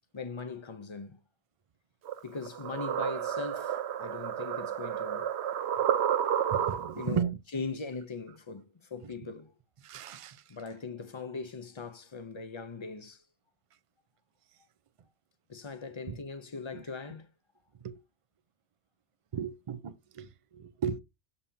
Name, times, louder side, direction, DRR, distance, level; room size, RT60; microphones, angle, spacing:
voice 1, 0.1-1.2 2.2-5.3 6.9-9.5 10.5-13.2 15.5-17.3, left 4 dB, 30° left, 0.7 m, -40 dB
sound 1, 2.1-7.1, right 9 dB, 70° right, 0.9 m, -31 dB
voice 2, 6.5-7.4 9.8-10.4 16.1-16.2 16.7-16.8 17.8-18.0 19.3-21.0, right 7 dB, 45° right, 0.4 m, -35 dB
7.1 x 5.4 x 2.7 m
omnidirectional pair, 1.2 m